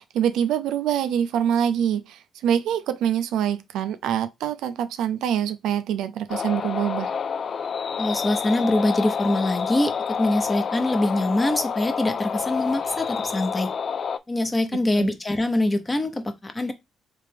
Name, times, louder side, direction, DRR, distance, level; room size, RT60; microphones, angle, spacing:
voice 1, 0.0-7.1 15.0-15.1, right 9 dB, 85° right, 0.4 m, -25 dB
sound 1, 6.3-14.2, left 6 dB, 50° left, 0.3 m, -28 dB
voice 2, 8.0-13.7 14.3-16.7, left 1 dB, 20° left, 0.8 m, -24 dB
3.3 x 3.2 x 3.4 m
cardioid pair, 90°, 0 cm